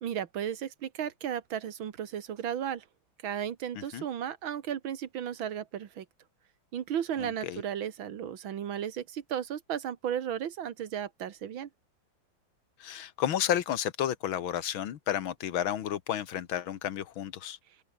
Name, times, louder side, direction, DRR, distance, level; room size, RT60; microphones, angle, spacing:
voice 1, 0.0-2.8 3.2-6.1 6.7-11.7, right 9 dB, 80° right, 2.2 m, -34 dB
voice 2, 7.2-7.6 12.8-17.6, left 10 dB, 80° left, 2.0 m, -32 dB
open air
omnidirectional pair, 2.2 m